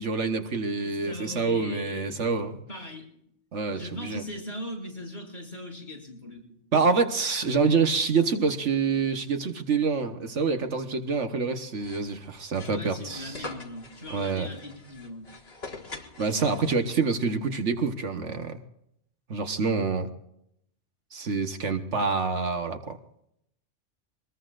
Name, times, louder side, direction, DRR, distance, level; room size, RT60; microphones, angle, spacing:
voice 1, 0.0-2.6 3.5-4.2 6.7-13.4 14.1-14.5 16.2-18.6 19.3-20.1 21.1-23.0, right 4 dB, 70° right, 6 dB, 1.6 m, -26 dB
voice 2, 0.8-3.1 3.7-6.6 12.5-15.3, left 1 dB, 40° left, 0 dB, 6.7 m, -40 dB
sound 1, 11.8-17.1, left 3 dB, 55° left, 2.1 m, -44 dB
24.5 x 20.5 x 2.5 m, 0.74 s
omnidirectional pair, 1.3 m